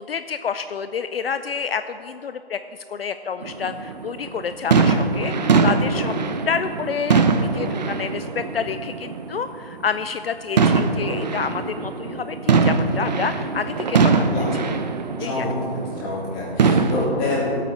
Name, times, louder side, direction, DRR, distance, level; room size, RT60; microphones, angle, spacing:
voice 1, 0.0-2.6 2.9-5.3 5.6-6.1 6.5-14.3 15.2-15.5, left 6 dB, 70° left, 10 dB, 0.5 m, -28 dB
sound 1, 3.4-9.4 9.7-10.0 10.6-16.2 16.6-17.1, right 4 dB, 45° right, 0.8 m, -21 dB
voice 2, 15.2-17.7, left 2 dB, 20° left, -7 dB, 3.4 m, -26 dB
18.0 x 8.3 x 4.2 m, 2.8 s
figure-of-eight pair, 150°, 31 cm